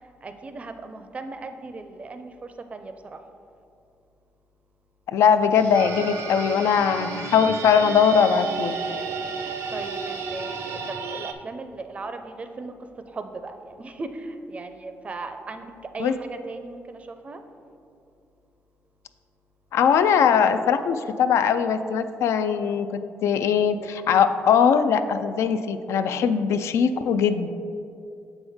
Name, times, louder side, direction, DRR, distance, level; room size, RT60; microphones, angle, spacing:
voice 1, 0.2-2.9 9.7-12.7 13.1-15.7 15.9-17.4, right 3 dB, 30° right, 8 dB, 0.4 m, -37 dB
voice 2, 5.1-8.8 16.0-16.2 19.7-27.5, left 7 dB, 80° left, 10 dB, 0.3 m, -21 dB
sound 1, 5.5-10.9, left 2 dB, 50° left, 1.1 m, -44 dB
sound 2, 5.7-11.3, right 5 dB, 85° right, 0.5 m, -33 dB
6.9 x 5.4 x 3.5 m, 2.5 s
cardioid pair, 140°, 5 cm